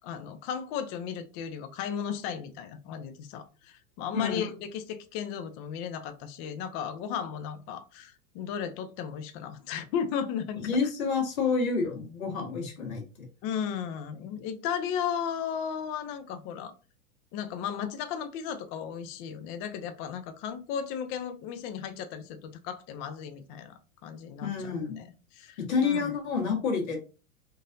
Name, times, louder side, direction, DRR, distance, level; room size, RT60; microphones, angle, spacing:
voice 1, 0.0-10.6 13.4-16.7 17.3-25.0 25.3-26.2, left 8 dB, 40° left, 0.5 m, -35 dB
voice 2, 10.5-13.0 24.4-25.1 25.6-27.0, left 5 dB, 85° left, 1.6 m, -28 dB
3.8 x 2.6 x 2.6 m
hypercardioid pair, 125°, 41 cm